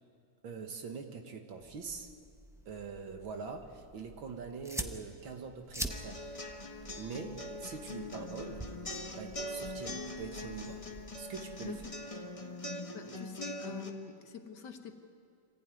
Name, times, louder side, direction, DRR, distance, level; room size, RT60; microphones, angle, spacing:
voice 1, 0.4-2.1 2.7-6.2 7.0-8.7 9.1-10.8 11.2-11.8, right 5 dB, 80° right, 4 dB, 2.4 m, -43 dB
sound 1, 1.6-11.9, right 1 dB, 5° right, 0.5 m, -46 dB
sound 2, 5.9-13.9, left 1 dB, 20° left, 1.2 m, -42 dB
voice 2, 12.9-15.0, left 5 dB, 60° left, 6 dB, 1.8 m, -45 dB
25.0 x 15.5 x 9.3 m, 2.4 s
omnidirectional pair, 2.2 m